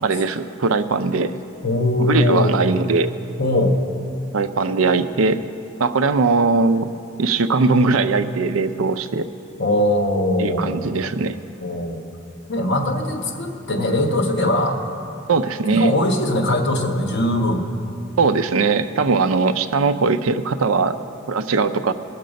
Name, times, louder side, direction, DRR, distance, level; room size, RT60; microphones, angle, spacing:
voice 1, 0.0-1.4 2.0-3.1 4.3-5.4 5.8-6.9 7.2-9.3 10.4-11.4 15.3-15.9 18.2-21.0 21.3-21.9, right 4 dB, 80° right, 11 dB, 0.5 m, -20 dB
voice 2, 1.6-2.6 3.4-3.8 9.6-10.9 11.6-12.0 12.5-14.8 15.7-17.6, left 1 dB, 55° left, 3 dB, 1.2 m, -20 dB
19.5 x 6.6 x 5.2 m, 2.7 s
head